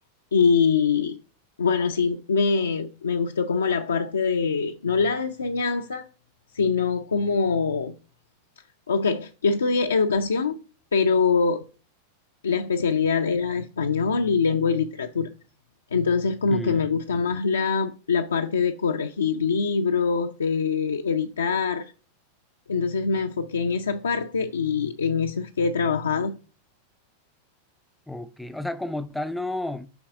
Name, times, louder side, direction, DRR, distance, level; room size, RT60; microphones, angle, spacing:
voice 1, 0.3-1.2 1.6-6.1 6.5-7.9 8.9-10.6 10.9-11.6 12.4-15.3 15.9-21.9 22.7-26.3, left 5 dB, 70° left, 0.4 m, -24 dB
voice 2, 16.5-17.4 28.1-29.9, left 1 dB, 5° left, 0.4 m, -32 dB
7.0 x 4.6 x 3.6 m
figure-of-eight pair, 90°, 0 cm